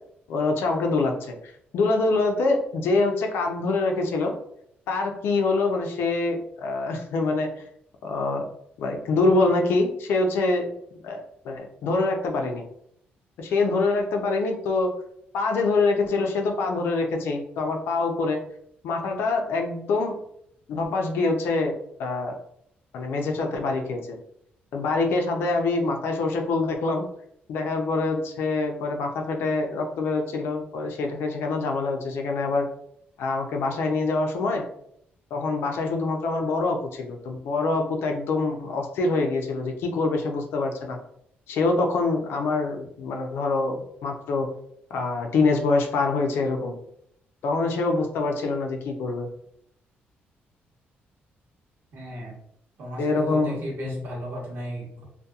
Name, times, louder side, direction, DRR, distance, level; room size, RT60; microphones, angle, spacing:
voice 1, 0.3-1.4 1.7-4.3 4.9-7.5 8.0-8.4 8.8-10.7 11.0-12.6 13.4-14.9 15.3-18.4 18.8-20.1 20.7-21.7 22.0-22.3 22.9-24.2 24.7-27.1 27.5-32.7 33.2-34.6 35.3-41.0 41.5-44.5 44.9-46.8 47.4-49.3 53.0-53.6 53.8-54.0, left 3 dB, 80° left, 3 dB, 0.4 m, -25 dB
voice 2, 51.9-52.3 52.8-55.0, equal, 60° right, -2 dB, 0.9 m, -35 dB
2.7 x 2.2 x 2.3 m, 0.72 s
cardioid pair, 145°, 4 cm